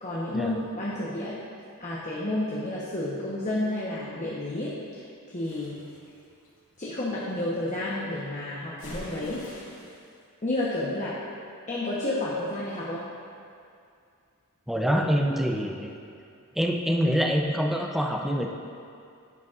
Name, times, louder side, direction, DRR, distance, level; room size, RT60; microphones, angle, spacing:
voice 1, 0.0-1.4 1.8-4.7 5.3-5.9 6.8-9.5 10.4-11.2 11.7-13.0, left 1 dB, 35° left, -7 dB, 1.1 m, -30 dB
sound 1, 5.4-7.3 8.8-10.1, left 1 dB, 80° left, 2.0 m, -45 dB
voice 2, 14.7-15.9 16.6-18.5, equal, ahead, 1 dB, 0.6 m, -25 dB
10.5 x 8.2 x 2.5 m, 2.4 s
head